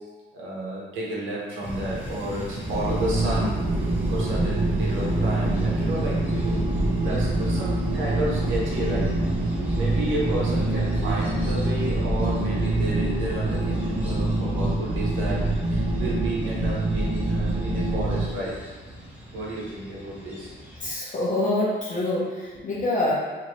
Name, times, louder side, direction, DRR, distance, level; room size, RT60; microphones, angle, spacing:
voice 1, 0.3-9.1 9.7-15.4 15.7-18.5 19.3-20.6, right 1 dB, 80° right, -5 dB, 0.9 m, -31 dB
sound 1, 1.6-20.9, equal, 5° right, 1.0 m, -39 dB
sound 2, 2.6-18.3, right 2 dB, 30° right, 0.5 m, -25 dB
voice 2, 20.7-23.1, left 2 dB, 40° left, -6 dB, 0.8 m, -26 dB
2.9 x 2.6 x 3.0 m, 1.3 s
cardioid pair, 90°, 20 cm